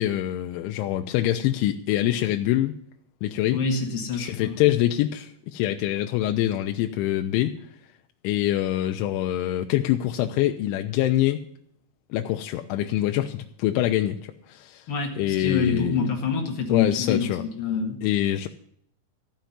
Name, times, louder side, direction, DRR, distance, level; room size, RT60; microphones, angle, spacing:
voice 1, 0.0-2.8 3.2-3.6 4.1-7.6 8.2-11.5 12.1-14.9 15.2-16.1 16.7-17.4 18.0-18.5, left 13 dB, 80° left, 5 dB, 2.9 m, -25 dB
voice 2, 3.5-4.6 14.9-18.0, left 5 dB, 60° left, 1 dB, 1.4 m, -26 dB
15.0 x 5.8 x 9.2 m, 0.68 s
omnidirectional pair, 5.8 m